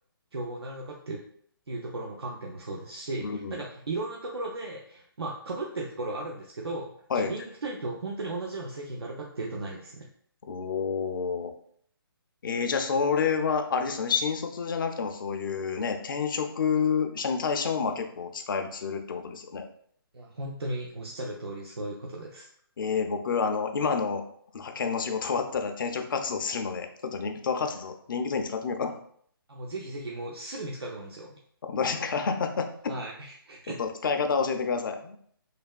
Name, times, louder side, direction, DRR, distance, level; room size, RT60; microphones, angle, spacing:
voice 1, 0.3-1.2 1.7-10.1 20.1-22.5 27.5-27.7 29.5-31.4 32.9-33.8, right 2 dB, 90° right, -1 dB, 0.5 m, -36 dB
voice 2, 3.2-3.6 7.1-7.3 10.4-11.5 12.4-19.6 22.8-24.2 24.5-28.9 31.6-32.7 33.8-35.2, left 5 dB, 55° left, 6 dB, 0.4 m, -29 dB
3.2 x 2.2 x 2.3 m, 0.62 s
hypercardioid pair, 150°, 13 cm